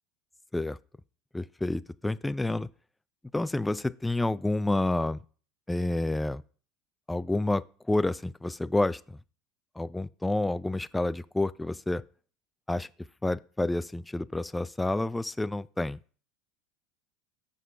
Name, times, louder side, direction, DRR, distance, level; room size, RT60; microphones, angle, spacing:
voice 1, 1.3-2.7 3.3-5.2 5.7-6.4 7.1-9.0 9.8-12.0 12.7-12.9 13.2-16.0, left 2 dB, 10° left, 0.3 m, -29 dB
7.8 x 4.7 x 5.7 m
hypercardioid pair, 85°, 0 cm